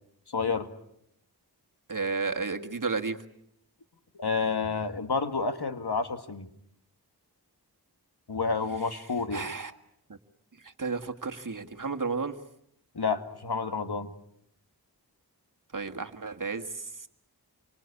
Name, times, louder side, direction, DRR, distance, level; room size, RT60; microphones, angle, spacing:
voice 1, 0.3-0.7 4.1-6.5 8.3-9.5 13.0-14.1, left 4 dB, 70° left, 8 dB, 1.9 m, -29 dB
voice 2, 1.9-3.2 9.3-9.7 10.1-10.2 10.6-12.4 15.7-17.1, right 4 dB, 50° right, 5 dB, 1.8 m, -32 dB
27.5 x 25.0 x 8.4 m, 0.73 s
wide cardioid pair, 65°, 40 cm